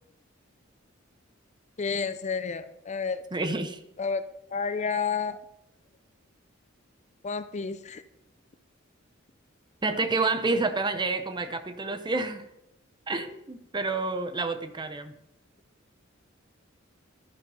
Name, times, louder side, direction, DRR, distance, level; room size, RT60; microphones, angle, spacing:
voice 1, 1.8-3.2 4.0-4.2 4.5-5.4 7.2-8.0, left 5 dB, 35° left, 12 dB, 0.5 m, -30 dB
voice 2, 3.3-3.8 9.8-12.5 13.1-15.1, right 3 dB, 20° right, 10 dB, 0.8 m, -29 dB
12.0 x 11.0 x 4.3 m, 0.83 s
head